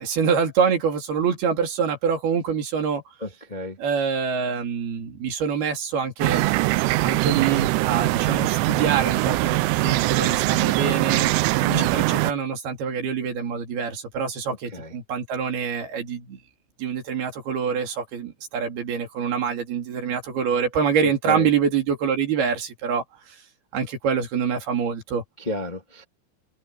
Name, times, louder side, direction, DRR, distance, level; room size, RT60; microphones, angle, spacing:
voice 1, 0.0-3.0 3.8-6.4 7.0-11.3 11.8-16.4 16.8-23.0 23.7-25.2, right 6 dB, 55° right, 4.7 m, -25 dB
voice 2, 3.2-3.8 11.6-11.9 14.7-14.9 21.3-21.5 25.4-26.0, left 1 dB, 85° left, 0.4 m, -31 dB
sound 1, 6.2-12.3, right 21 dB, 80° right, 3.1 m, -22 dB
open air
omnidirectional pair, 5.7 m